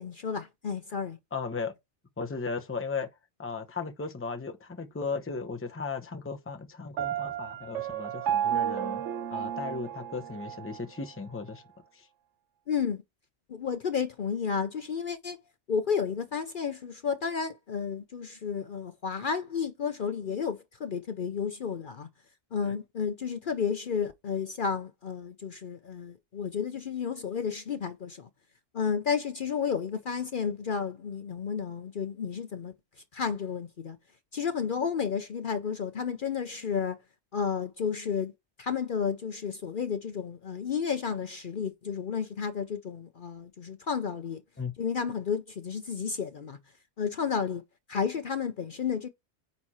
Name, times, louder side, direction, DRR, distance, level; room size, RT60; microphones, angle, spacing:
voice 1, 0.0-1.2 12.7-13.0 13.5-15.4 15.7-22.1 22.5-28.3 28.7-32.7 33.1-34.0 34.3-37.0 37.3-38.3 38.6-44.4 44.8-46.6 47.0-47.6 47.9-49.1, left 6 dB, 50° left, 0.8 m, -32 dB
voice 2, 1.3-1.7 2.2-3.1 3.4-9.0 9.3-11.6 22.6-22.7 44.6-44.7, left 4 dB, 15° left, 0.8 m, -36 dB
Piano, 7.0-10.8, right 10 dB, 90° right, 1.0 m, -32 dB
9.4 x 4.3 x 4.2 m
omnidirectional pair, 1.2 m